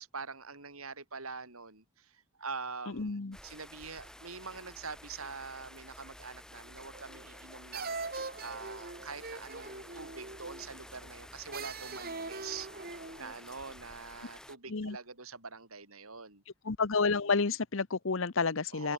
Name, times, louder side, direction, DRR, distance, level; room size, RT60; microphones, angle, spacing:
voice 1, 0.0-8.0 8.4-12.7 13.2-16.4 18.7-18.9, right 4 dB, 85° right, 7.4 m, -44 dB
voice 2, 3.0-3.4 14.7-15.0 16.6-18.9, left 4 dB, 65° left, 0.9 m, -30 dB
sound 1, 3.3-14.6, left 1 dB, 5° left, 4.3 m, -51 dB
sound 2, 6.9-7.4 7.7-10.8 11.5-13.3, right 3 dB, 45° right, 4.8 m, -42 dB
head